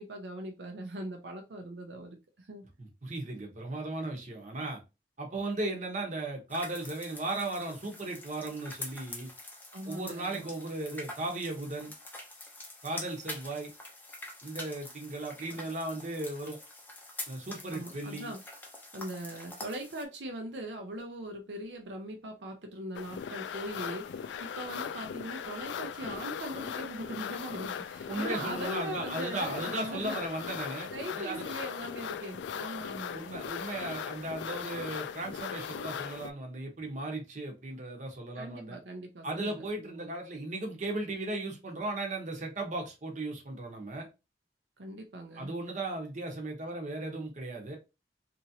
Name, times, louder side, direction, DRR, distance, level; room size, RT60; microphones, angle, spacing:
voice 1, 0.0-2.6 9.7-10.5 15.4-15.6 17.7-18.4 18.9-30.2 30.9-33.3 38.4-40.1 44.8-45.5, right 1 dB, 80° right, 0.6 m, -40 dB
voice 2, 2.8-4.8 5.2-9.3 9.9-11.9 12.8-13.7 14.4-16.6 17.3-18.3 28.1-31.4 33.1-38.8 39.2-44.1 45.4-47.8, right 2 dB, 45° right, 0.9 m, -36 dB
sound 1, 6.5-20.0, left 2 dB, 10° left, 0.6 m, -46 dB
sound 2, 22.9-36.3, left 8 dB, 85° left, 0.3 m, -39 dB
2.9 x 2.6 x 2.7 m
head